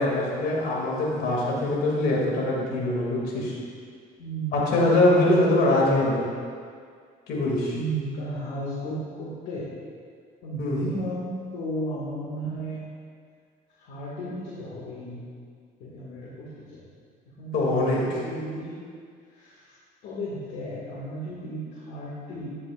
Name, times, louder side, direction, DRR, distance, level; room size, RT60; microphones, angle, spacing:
voice 1, 0.0-3.5 4.5-6.3 7.3-7.7 10.6-10.8 17.5-18.0, left 2 dB, 70° left, -3 dB, 2.6 m, -23 dB
voice 2, 4.2-4.8 5.2-6.1 7.7-9.7 10.4-12.8 13.8-15.3 15.8-16.8 17.3-18.8 19.3-19.7 20.0-22.5, right 1 dB, 90° left, -7 dB, 2.0 m, -34 dB
11.5 x 9.5 x 2.5 m, 2.1 s
cardioid pair, 110°, 17 cm